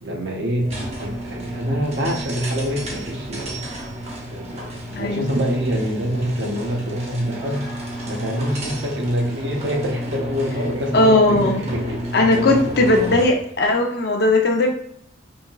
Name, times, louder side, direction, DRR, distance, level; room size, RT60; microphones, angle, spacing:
voice 1, 0.0-0.7 1.0-3.6 4.3-7.6 8.0-12.7, equal, 65° right, 1 dB, 0.8 m, -25 dB
sound 1, 0.6-13.4, equal, 35° right, 0.7 m, -31 dB
voice 2, 4.9-5.3 10.9-11.6 12.1-14.7, left 2 dB, 55° left, 2 dB, 0.6 m, -17 dB
5.0 x 2.7 x 2.4 m, 0.68 s
head